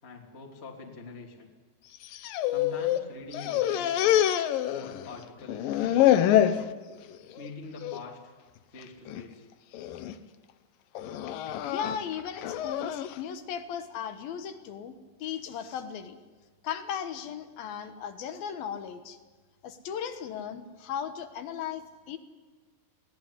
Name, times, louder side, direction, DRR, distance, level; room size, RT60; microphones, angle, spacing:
voice 1, 0.0-1.5 2.5-4.1 4.7-6.3 7.3-8.2 8.7-9.5, left 3 dB, 15° left, 0 dB, 2.4 m, -45 dB
sound 1, 2.0-3.0 3.3-5.2 5.5-6.6 7.1-7.5 7.8-8.0 8.8-9.2 9.7-10.1 11.0-13.2, left 11 dB, 85° left, 2.0 m, -26 dB
voice 2, 11.7-14.9 15.2-16.2 16.6-19.2 19.6-22.2, left 8 dB, 70° left, 9 dB, 2.6 m, -36 dB
21.5 x 17.5 x 10.0 m, 1.4 s
omnidirectional pair, 5.3 m